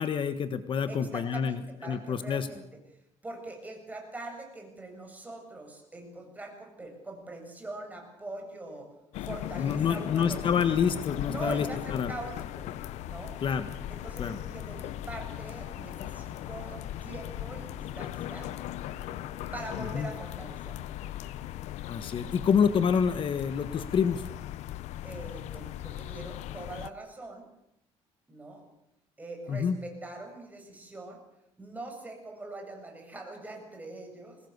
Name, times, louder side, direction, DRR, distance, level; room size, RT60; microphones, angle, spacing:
voice 1, 0.0-2.5 9.6-12.1 13.4-13.6 14.2-14.4 19.9-20.1 21.9-24.2 29.5-29.7, left 7 dB, 45° left, 11 dB, 1.5 m, -27 dB
voice 2, 0.9-2.6 3.2-8.9 9.2-10.6 11.2-12.7 13.0-13.3 13.9-18.5 19.5-20.8 25.0-27.4 28.3-28.6 29.2-31.2 31.6-34.4, right 2 dB, 15° right, 2 dB, 7.9 m, -42 dB
sound 1, 9.1-26.9, left 13 dB, 80° left, 0.9 m, -38 dB
sound 2, 9.3-19.9, left 2 dB, 20° left, 6.0 m, -52 dB
23.5 x 19.5 x 8.2 m, 0.81 s
cardioid pair, 125°, 12 cm